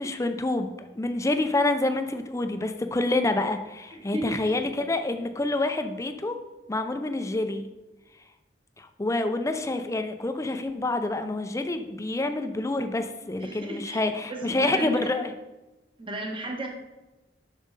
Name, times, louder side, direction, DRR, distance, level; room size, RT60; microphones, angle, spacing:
voice 1, 0.0-6.4 6.7-7.7 8.8-15.3, left 2 dB, 15° left, 8 dB, 0.5 m, -27 dB
voice 2, 3.9-4.5 13.4-15.1 16.0-16.7, right 1 dB, 30° right, 1 dB, 1.3 m, -35 dB
7.3 x 6.3 x 4.1 m, 1.1 s
head